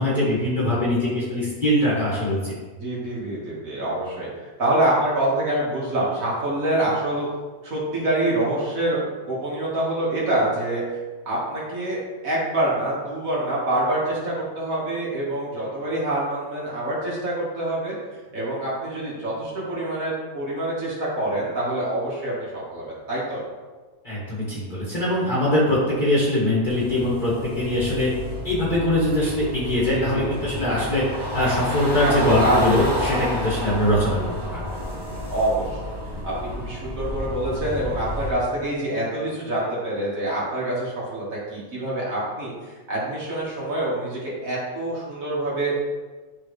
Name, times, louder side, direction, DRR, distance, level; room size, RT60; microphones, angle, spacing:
voice 1, 0.0-2.5 24.0-28.1 28.4-31.0 31.3-34.6, left 1 dB, 30° left, -8 dB, 2.1 m, -22 dB
voice 2, 2.8-4.3 4.6-7.3 7.6-10.8 11.3-18.0 18.3-23.4 29.8-30.2 30.6-30.9 32.0-32.9 35.3-35.8 36.2-41.2 41.5-42.5 42.9-45.8, right 1 dB, 65° right, -7 dB, 2.5 m, -26 dB
sound 1, 26.7-38.3, left 1 dB, 20° right, 1.1 m, -30 dB
11.5 x 4.0 x 3.4 m, 1.4 s
omnidirectional pair, 1.5 m